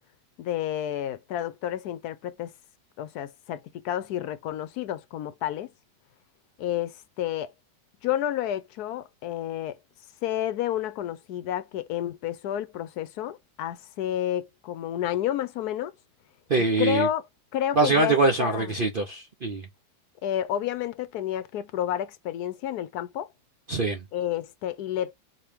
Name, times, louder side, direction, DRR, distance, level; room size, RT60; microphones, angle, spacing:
voice 1, 0.4-2.5 3.0-5.7 6.6-7.5 8.0-9.8 10.2-15.9 16.6-17.3 17.5-18.8 20.2-23.3 24.1-25.1, left 11 dB, 75° left, 1.1 m, -30 dB
voice 2, 16.5-17.1 17.8-19.6 23.7-24.0, right 3 dB, 50° right, 0.6 m, -23 dB
4.5 x 2.9 x 3.5 m
omnidirectional pair, 1.8 m